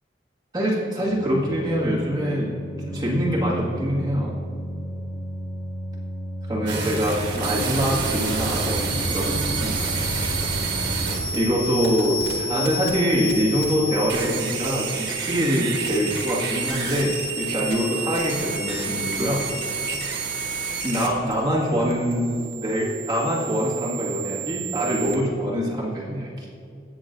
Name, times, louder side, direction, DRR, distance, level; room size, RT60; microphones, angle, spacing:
voice 1, 0.5-2.5 2.9-4.4 6.5-9.9 11.3-19.4 20.8-22.3 22.5-26.5, equal, 20° right, -6 dB, 1.8 m, -24 dB
Organ, 0.9-11.7, equal, 55° left, 2.1 m, -34 dB
sound 1, 6.7-25.1, right 3 dB, 80° right, 1.4 m, -29 dB
17.0 x 6.2 x 2.6 m, 2.5 s
head